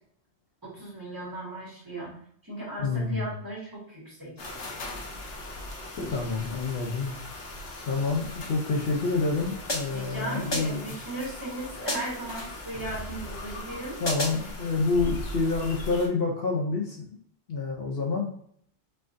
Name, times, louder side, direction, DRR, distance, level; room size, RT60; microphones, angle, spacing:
voice 1, 0.6-2.1 2.4-4.5 9.9-14.0, right 2 dB, 20° right, -6 dB, 1.7 m, -37 dB
voice 2, 2.8-3.2 6.1-7.1 7.9-11.0 14.0-17.1 17.5-18.3, left 3 dB, 60° left, 0 dB, 0.8 m, -28 dB
sound 1, 4.4-16.1, left 1 dB, 85° left, 1.1 m, -39 dB
sound 2, 9.7-10.1 10.5-10.9 11.9-12.3 14.1-14.5, left 1 dB, 30° left, 0.7 m, -32 dB
4.3 x 3.6 x 2.5 m, 0.65 s
omnidirectional pair, 1.2 m